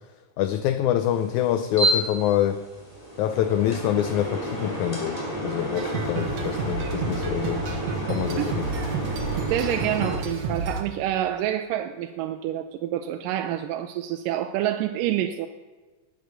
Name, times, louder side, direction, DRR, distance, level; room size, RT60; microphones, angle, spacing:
voice 1, 0.4-2.6 3.2-7.6 8.1-8.7, left 11 dB, 75° left, 10 dB, 1.9 m, -25 dB
sound 1, 1.1-10.2, right 1 dB, 10° left, 3.2 m, -31 dB
sound 2, 5.8-10.8, right 4 dB, 60° right, 2.4 m, -30 dB
voice 2, 9.5-15.5, right 12 dB, 85° right, 7 dB, 2.3 m, -27 dB
19.0 x 8.1 x 6.7 m, 1.3 s
omnidirectional pair, 3.8 m